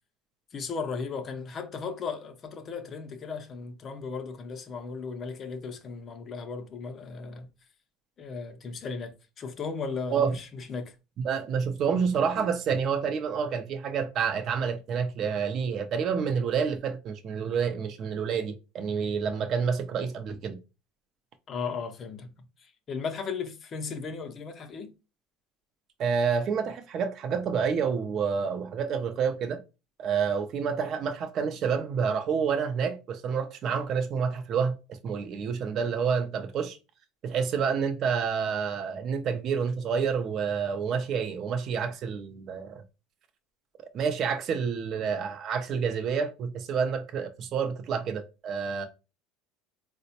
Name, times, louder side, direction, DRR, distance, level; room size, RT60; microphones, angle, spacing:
voice 1, 0.5-7.5 8.2-10.9 21.5-22.3 22.6-24.9, left 5 dB, 30° left, 0.5 m, -36 dB
voice 2, 11.2-20.6 26.0-29.6 30.0-34.8 35.0-36.8 37.2-42.8 43.9-48.9, right 6 dB, 45° right, 0.5 m, -28 dB
4.1 x 2.1 x 2.7 m
cardioid pair, 135°, 0 cm